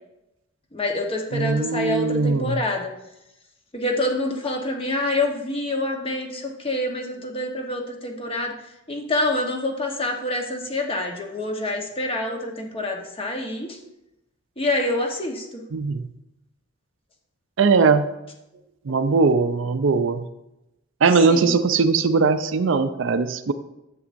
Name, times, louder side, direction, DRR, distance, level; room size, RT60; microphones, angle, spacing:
voice 1, 0.7-2.9 3.7-8.6 8.9-13.8 14.6-15.6 21.3-21.6, left 2 dB, 25° left, 2 dB, 1.0 m, -26 dB
voice 2, 1.3-2.6 15.7-16.1 17.6-18.1 18.9-20.2 21.0-23.5, right 4 dB, 65° right, 10 dB, 0.5 m, -20 dB
9.9 x 7.5 x 2.6 m, 0.89 s
head